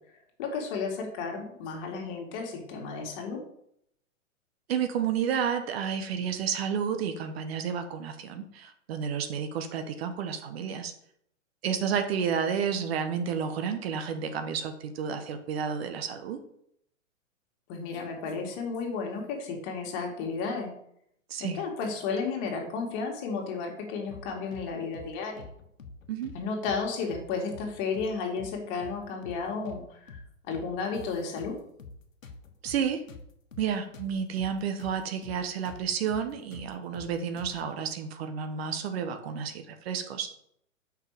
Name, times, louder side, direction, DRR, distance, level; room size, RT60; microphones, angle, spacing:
voice 1, 0.4-3.4 17.7-20.7 21.4-25.5 26.3-30.2 30.5-31.6, left 5 dB, 40° left, 1 dB, 2.4 m, -33 dB
voice 2, 4.7-10.9 11.6-16.4 21.3-21.6 26.1-26.3 32.6-33.0 33.6-40.3, right 7 dB, 50° right, 8 dB, 1.1 m, -31 dB
sound 1, 24.1-24.7 24.9-25.1 25.4-26.4 26.7-26.8 27.1-28.1 28.4-28.5 28.8-29.8 30.1-30.2 30.5-32.0 32.2-35.0 35.2-35.4 35.7-37.7, left 4 dB, 90° left, 1.3 m, -46 dB
6.6 x 5.6 x 4.9 m, 0.72 s
hypercardioid pair, 120°, 39 cm